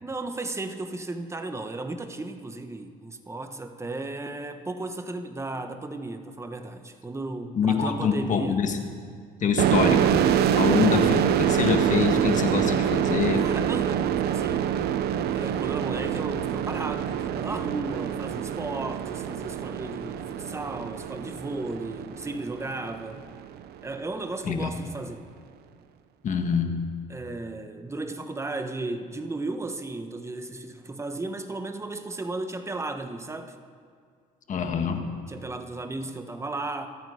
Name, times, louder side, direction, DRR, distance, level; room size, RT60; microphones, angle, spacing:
voice 1, 0.0-8.6 13.4-14.7 15.3-23.2 23.8-25.3 27.1-33.5 35.3-36.9, right 2 dB, 15° right, 7 dB, 1.2 m, -35 dB
voice 2, 7.5-8.8 9.4-13.4 24.4-24.7 26.2-26.8 34.5-35.1, left 6 dB, 45° left, 5 dB, 1.7 m, -25 dB
sound 1, 9.6-23.0, right 9 dB, 70° right, 0.8 m, -25 dB
26.5 x 9.1 x 4.9 m, 2.1 s
cardioid pair, 110°, 17 cm